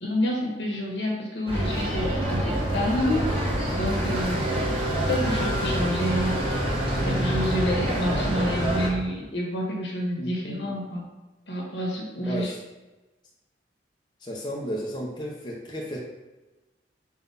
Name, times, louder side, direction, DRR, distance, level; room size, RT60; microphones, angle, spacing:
voice 1, 0.0-3.3 3.7-4.5 5.1-6.6 7.0-11.0 11.5-12.5, equal, 75° left, -1 dB, 1.5 m, -28 dB
sound 1, 1.5-8.9, right 1 dB, 30° right, 1.5 m, -26 dB
voice 2, 10.2-10.8 12.2-12.6 14.2-16.0, equal, 25° left, -2 dB, 0.8 m, -34 dB
4.7 x 4.0 x 5.5 m, 1.1 s
head